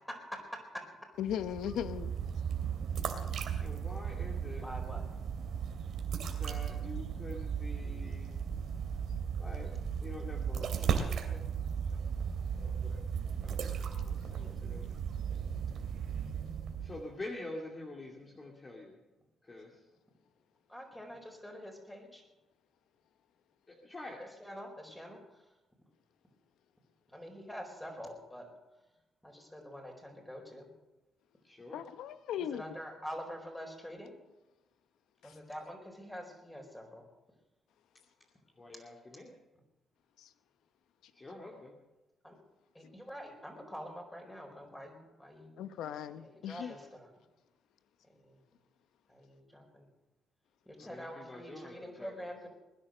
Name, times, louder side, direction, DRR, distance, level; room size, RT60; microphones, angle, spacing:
voice 1, 0.1-1.1 4.6-5.0 13.7-13.8 20.7-22.2 24.2-25.2 27.1-28.5 29.2-30.7 32.4-34.1 35.2-37.0 42.2-42.4 42.7-45.5 46.2-47.1 48.2-48.4 49.1-49.9 50.7-52.5, equal, 10° left, 4.6 m, -46 dB
voice 2, 1.2-2.1 31.7-32.6 45.6-46.7, left 9 dB, 80° left, 0.9 m, -37 dB
Throwing Stones to Lake, 1.2-17.1, right 7 dB, 70° right, 2.4 m, -36 dB
voice 3, 3.6-4.7 6.3-8.6 9.4-9.7 10.0-12.0 12.6-13.0 13.4-13.6 14.0-15.0 16.8-19.0 19.4-19.8 23.7-24.2 31.4-31.8 38.6-39.3 41.1-41.8 46.6-46.8 50.8-52.3, left 2 dB, 25° left, 2.4 m, -47 dB
20.5 x 10.5 x 6.6 m
cardioid pair, 90°, 0 cm